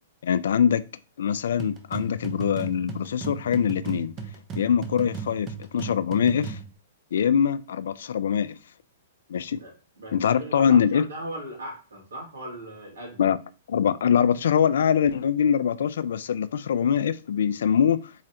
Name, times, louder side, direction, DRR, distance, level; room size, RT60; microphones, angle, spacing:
voice 1, 0.2-0.8 1.2-4.1 4.6-6.6 7.1-8.6 9.3-9.6 10.1-11.0 13.2-13.4 13.7-18.1, left 8 dB, 75° left, 0.3 m, -23 dB
sound 1, 1.6-6.7, right 6 dB, 30° right, 0.7 m, -36 dB
voice 2, 9.6-13.3, right 1 dB, 85° right, 2.2 m, -38 dB
3.9 x 3.2 x 2.8 m
hypercardioid pair, 125°, 0 cm